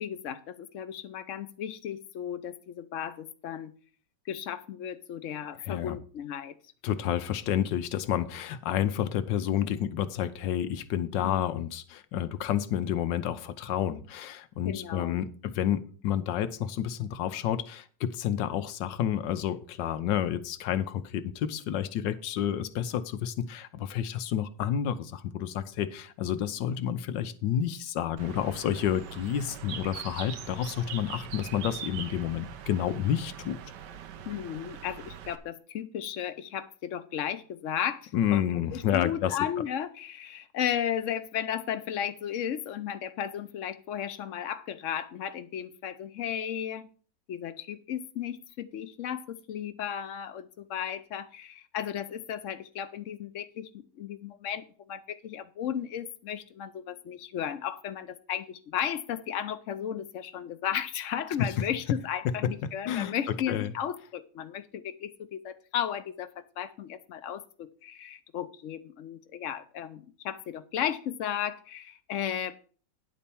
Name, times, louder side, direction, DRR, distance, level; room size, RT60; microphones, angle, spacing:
voice 1, 0.0-3.7 4.3-6.6 11.2-11.6 14.7-15.2 34.3-46.9 47.3-72.5, left 9 dB, 60° left, 11 dB, 0.9 m, -35 dB
voice 2, 5.7-6.0 6.8-33.6 38.1-39.4 62.9-63.1 63.5-63.7, left 10 dB, 90° left, 11 dB, 1.4 m, -30 dB
Bird, 28.2-35.4, right 9 dB, 75° right, 1.4 m, -42 dB
10.5 x 4.3 x 6.9 m, 0.42 s
omnidirectional pair, 1.9 m